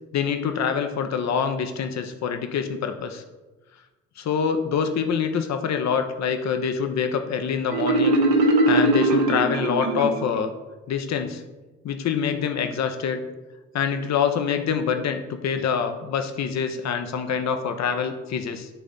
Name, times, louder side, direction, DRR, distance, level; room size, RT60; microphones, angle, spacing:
voice 1, 0.1-3.2 4.2-10.5 10.9-11.4 11.8-13.2 13.7-18.7, left 6 dB, 45° left, 7 dB, 0.8 m, -25 dB
Marimba xylophone, 7.7-10.5, right 2 dB, 70° right, 1.1 m, -21 dB
9.1 x 3.7 x 3.5 m, 1.1 s
hypercardioid pair, 45°, 37 cm